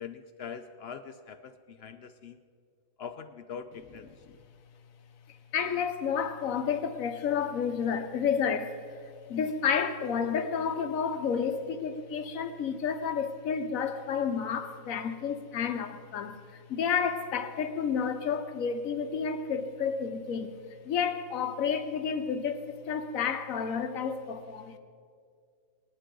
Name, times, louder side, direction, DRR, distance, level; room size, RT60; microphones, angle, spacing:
voice 1, 0.0-2.4 3.0-4.2, left 6 dB, 60° left, 0.7 m, -43 dB
voice 2, 5.5-20.5 20.8-24.8, left 6 dB, 90° left, 1.3 m, -31 dB
19.5 x 11.5 x 3.8 m
omnidirectional pair, 1.4 m